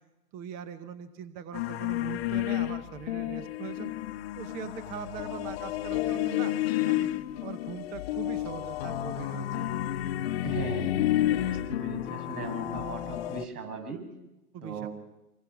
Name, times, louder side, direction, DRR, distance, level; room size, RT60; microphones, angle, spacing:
voice 1, 0.3-3.9 4.3-7.1 7.4-9.7 14.5-14.9, right 8 dB, 20° right, 11 dB, 0.9 m, -41 dB
sound 1, 1.5-13.5, left 13 dB, 40° left, 1.1 m, -31 dB
voice 2, 10.4-11.0 11.4-14.0 14.6-14.9, right 5 dB, 75° right, 4 dB, 7.5 m, -38 dB
26.5 x 23.5 x 6.2 m, 0.98 s
hypercardioid pair, 145°, 46 cm